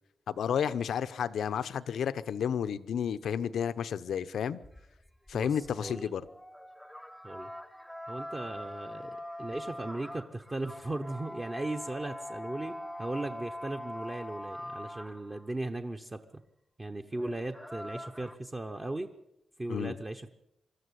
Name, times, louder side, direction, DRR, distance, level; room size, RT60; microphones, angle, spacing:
voice 1, 0.3-4.6 5.3-6.3 19.7-20.0, left 8 dB, 80° left, 0.9 m, -31 dB
sound 1, 4.6-15.5 17.0-18.4, left 1 dB, ahead, 0.9 m, -43 dB
voice 2, 5.3-6.1 7.2-7.5 8.1-16.2 16.8-19.1 19.6-20.3, right 2 dB, 20° right, 1.0 m, -37 dB
25.0 x 13.5 x 8.2 m
wide cardioid pair, 155°, 0 cm